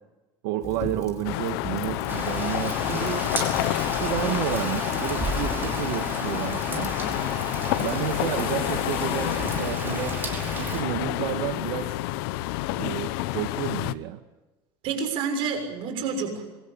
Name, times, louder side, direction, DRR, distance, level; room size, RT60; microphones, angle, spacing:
voice 1, 0.4-3.1 3.4-3.5 3.9-6.9 7.8-10.2 10.6-12.0 12.8-14.2, right 13 dB, 85° right, 6 dB, 1.7 m, -31 dB
Fire, 0.6-8.4, left 4 dB, 25° left, 4.0 m, -40 dB
sound 1, 1.2-13.9, left 17 dB, 80° left, 1.0 m, -29 dB
Rain, 2.1-10.8, right 3 dB, 15° right, 4.9 m, -34 dB
voice 2, 2.9-3.3 14.8-16.5, right 5 dB, 45° right, 6 dB, 6.8 m, -29 dB
26.5 x 23.0 x 6.9 m, 1.1 s
cardioid pair, 180°, 12 cm